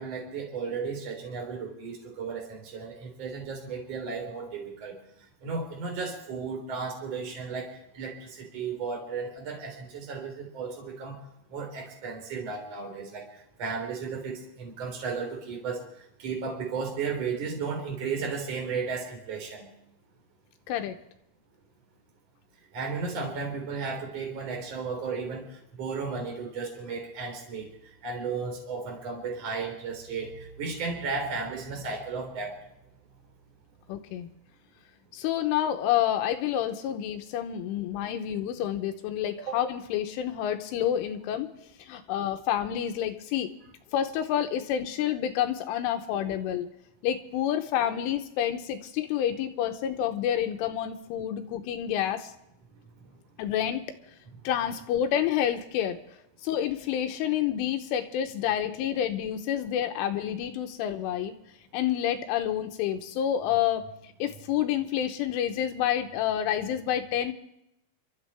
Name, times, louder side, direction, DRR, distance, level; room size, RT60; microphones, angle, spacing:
voice 1, 0.0-5.0 5.4-11.2 11.5-13.3 13.6-15.8 16.2-19.7 22.7-25.5 25.8-27.7 28.0-32.5 39.4-39.6, right 5 dB, 35° right, 0 dB, 4.1 m, -34 dB
voice 2, 33.9-34.3 35.1-41.5 41.8-43.5 43.9-46.7 47.0-52.3 53.4-53.8 54.4-56.0 56.4-61.3 61.7-63.8 64.2-67.3, left 10 dB, 80° left, 6 dB, 3.3 m, -28 dB
28.5 x 13.0 x 3.4 m, 0.80 s
omnidirectional pair, 5.9 m